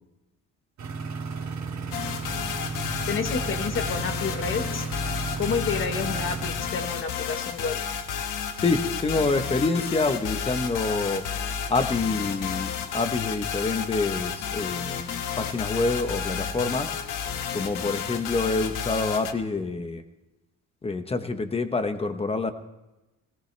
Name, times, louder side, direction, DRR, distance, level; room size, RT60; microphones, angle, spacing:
sound 1, 0.8-6.5, right 5 dB, 60° right, 2.7 m, -34 dB
sound 2, 1.9-19.3, left 7 dB, 75° left, 1.4 m, -31 dB
voice 1, 3.1-4.9 5.3-7.8, left 5 dB, 40° left, 6 dB, 1.4 m, -30 dB
voice 2, 8.6-11.3 11.7-17.0 17.5-20.0 20.8-22.5, left 3 dB, 20° left, 8 dB, 1.0 m, -27 dB
21.0 x 18.0 x 3.3 m, 1.0 s
cardioid pair, 150°, 32 cm